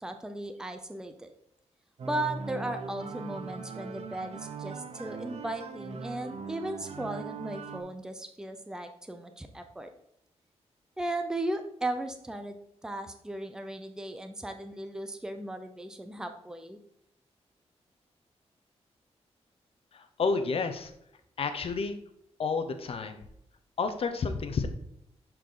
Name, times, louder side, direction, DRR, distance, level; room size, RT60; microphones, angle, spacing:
voice 1, 0.0-1.3 2.0-9.9 11.0-12.6 12.8-16.8, right 1 dB, 5° right, 7 dB, 0.8 m, -36 dB
sound 1, 2.0-7.8, right 5 dB, 65° right, 1.0 m, -40 dB
voice 2, 19.9-20.9 21.4-22.0 22.4-23.2 23.8-24.7, left 4 dB, 60° left, 8 dB, 1.0 m, -30 dB
11.5 x 4.6 x 4.0 m, 0.75 s
wide cardioid pair, 140°, 11 cm